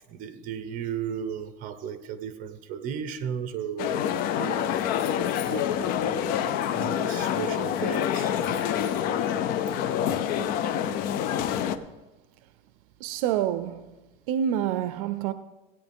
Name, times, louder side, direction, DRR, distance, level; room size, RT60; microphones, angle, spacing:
voice 1, 0.1-4.8 5.4-6.3 6.7-9.5, right 8 dB, 50° right, 1.0 m, -36 dB
sound 1, 3.8-11.8, left 9 dB, 55° left, 0.6 m, -27 dB
voice 2, 13.0-13.9 14.3-15.3, right 10 dB, 85° right, 0.5 m, -27 dB
16.0 x 9.1 x 3.6 m
cardioid pair, 145°, 18 cm